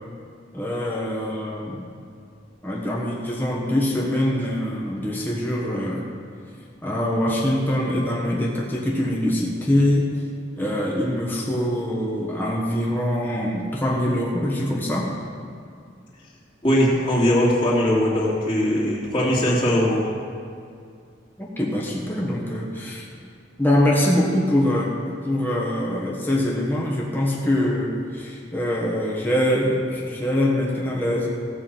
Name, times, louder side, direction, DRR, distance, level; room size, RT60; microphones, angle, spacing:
voice 1, 0.5-1.8 2.6-6.1 6.8-10.1 10.6-15.1 21.4-23.0 23.6-24.9 25.2-31.3, left 1 dB, 10° left, -4 dB, 1.5 m, -23 dB
voice 2, 16.6-20.1, equal, 25° left, -7 dB, 2.9 m, -20 dB
15.5 x 6.2 x 7.6 m, 2.3 s
head